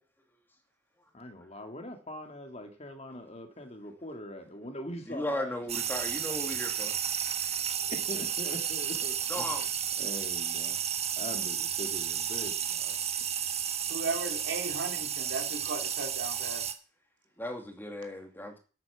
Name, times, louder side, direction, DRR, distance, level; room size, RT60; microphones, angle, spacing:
voice 1, 1.1-5.6 7.7-9.6 10.0-10.8 11.2-13.0, left 1 dB, 35° left, 5 dB, 2.2 m, -42 dB
voice 2, 5.1-6.9 9.3-9.7 17.4-18.6, left 1 dB, 10° left, 4 dB, 2.5 m, -36 dB
sound 1, 5.7-16.7, right 9 dB, 35° right, 1.2 m, -32 dB
voice 3, 13.9-16.6, right 3 dB, 70° right, 4 dB, 3.2 m, -36 dB
11.0 x 8.9 x 7.1 m, 0.37 s
head